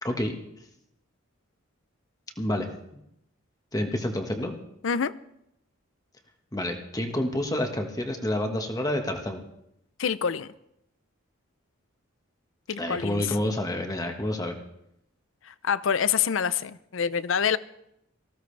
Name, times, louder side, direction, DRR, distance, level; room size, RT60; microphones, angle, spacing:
voice 1, 0.0-0.4 2.4-3.0 3.7-4.6 6.5-9.4 12.8-14.6, left 1 dB, 15° left, 1.4 m, -29 dB
voice 2, 10.0-10.5 12.7-13.4 15.4-17.6, left 7 dB, 70° left, 0.5 m, -26 dB
19.0 x 15.5 x 3.4 m
head